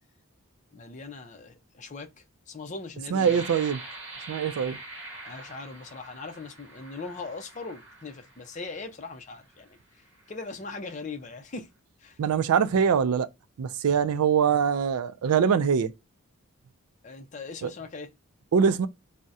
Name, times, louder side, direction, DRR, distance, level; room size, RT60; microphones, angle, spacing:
voice 1, 0.7-2.1 2.5-3.4 5.2-9.8 10.3-11.7 12.0-12.2 17.0-18.1, left 3 dB, 35° left, 0.5 m, -40 dB
sound 1, 3.1-8.8 9.4-9.6 10.1-10.5, right 2 dB, 55° right, 0.8 m, -44 dB
voice 2, 3.1-3.8 4.3-4.8 12.2-13.3 13.6-15.9 17.6-17.7 18.5-18.9, right 7 dB, 85° right, 0.3 m, -23 dB
2.7 x 2.1 x 3.4 m
head